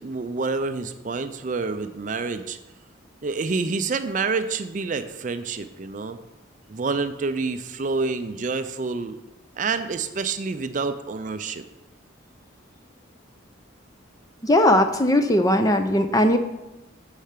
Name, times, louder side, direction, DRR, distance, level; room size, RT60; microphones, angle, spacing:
voice 1, 0.0-2.6 3.2-6.2 6.7-9.2 9.6-11.6, right 4 dB, 40° right, 10 dB, 0.4 m, -28 dB
voice 2, 14.4-16.4, left 1 dB, 20° left, 7 dB, 0.5 m, -19 dB
6.7 x 5.6 x 6.6 m, 1.0 s
head